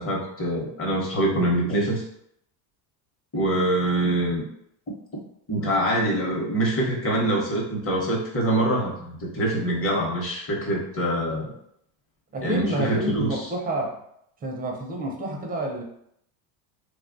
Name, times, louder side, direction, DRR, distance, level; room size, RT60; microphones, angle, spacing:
voice 1, 0.0-2.0 3.3-4.5 5.1-5.2 5.5-11.5 12.4-13.4, right 1 dB, 25° left, -2 dB, 0.9 m, -24 dB
voice 2, 12.3-13.9 14.4-15.8, right 1 dB, 20° right, 1 dB, 0.4 m, -29 dB
3.1 x 2.3 x 2.6 m, 0.73 s
supercardioid pair, 100°, 49 cm